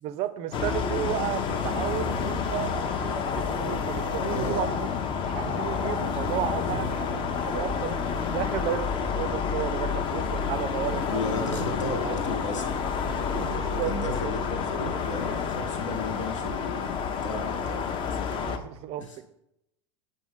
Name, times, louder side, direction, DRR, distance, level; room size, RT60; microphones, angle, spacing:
voice 1, 0.0-4.9 5.3-8.0 8.3-11.8 12.0-12.1 13.0-13.9 14.2-14.3 18.3-19.3, right 12 dB, 40° right, 14 dB, 0.4 m, -33 dB
sound 1, 0.5-18.6, left 6 dB, 30° left, 0.6 m, -29 dB
voice 2, 2.0-2.3 4.3-4.7 6.6-7.0 10.9-12.8 13.7-17.0 17.2-18.2 19.0-19.2, left 2 dB, 75° left, 4 dB, 1.1 m, -34 dB
7.1 x 4.2 x 3.5 m, 0.84 s
figure-of-eight pair, 80°, 16 cm